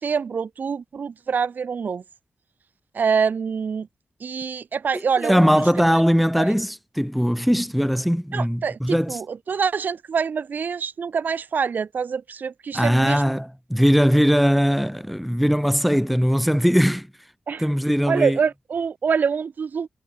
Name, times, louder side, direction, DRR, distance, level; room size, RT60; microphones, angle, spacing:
voice 1, 0.0-2.0 2.9-3.9 4.2-5.6 6.4-6.5 8.3-13.2 17.5-17.6 18.1-19.9, right 6 dB, 75° right, 5.0 m, -25 dB
voice 2, 5.2-9.2 12.7-17.1 17.6-18.4, equal, ahead, 1.5 m, -20 dB
cardioid pair, 55°, 3 cm